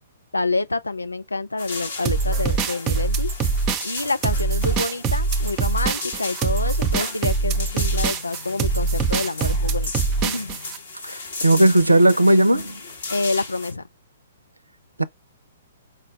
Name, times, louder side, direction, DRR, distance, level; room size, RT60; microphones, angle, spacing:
voice 1, 0.3-3.3 3.8-9.9 10.2-10.6 13.1-13.8, left 3 dB, 80° left, 0.5 m, -27 dB
sound 1, 1.6-13.7, left 3 dB, 60° left, 1.3 m, -35 dB
sound 2, 2.0-10.8, right 4 dB, 25° right, 0.6 m, -23 dB
voice 2, 11.0-12.8 15.0-15.1, right 1 dB, 85° right, 0.4 m, -16 dB
4.8 x 2.2 x 3.0 m
figure-of-eight pair, 120°, 0 cm